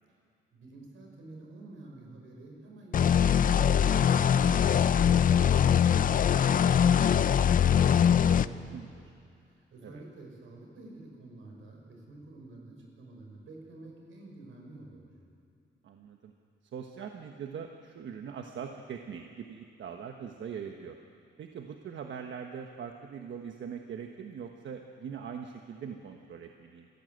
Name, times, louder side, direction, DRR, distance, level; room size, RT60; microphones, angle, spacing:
voice 1, 0.5-3.9 4.3-8.8 9.4-15.1, right 2 dB, 90° right, 0 dB, 5.7 m, -49 dB
sound 1, 2.9-8.5, left 8 dB, 45° left, 0.5 m, -22 dB
voice 2, 15.8-16.3 16.7-21.0 21.4-26.9, right 7 dB, 70° right, 4 dB, 1.2 m, -42 dB
28.5 x 15.0 x 7.9 m, 2.4 s
wide cardioid pair, 140°, 20 cm